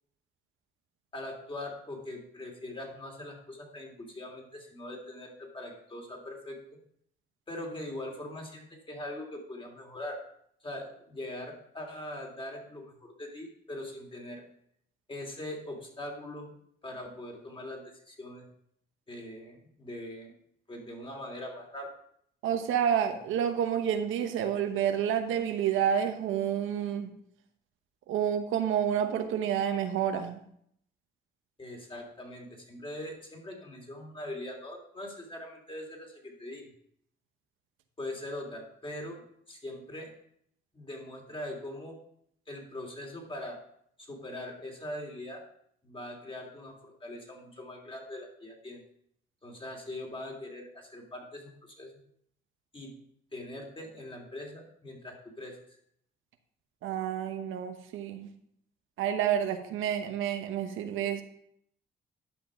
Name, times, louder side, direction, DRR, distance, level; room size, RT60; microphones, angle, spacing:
voice 1, 1.1-6.6 7.5-10.2 10.6-14.4 15.1-16.5 16.8-18.4 19.1-20.3 20.7-21.9 31.6-36.7 38.0-40.1 40.7-42.0 42.5-43.6 44.0-45.4 45.8-48.8 49.4-52.0 52.7-52.9 53.3-55.8, left 1 dB, 25° left, 1 dB, 3.0 m, -41 dB
voice 2, 22.4-27.1 28.1-30.4 56.8-58.3 59.0-61.2, right 9 dB, 85° right, 6 dB, 1.0 m, -29 dB
11.0 x 5.9 x 5.1 m, 0.68 s
cardioid pair, 90°, 20 cm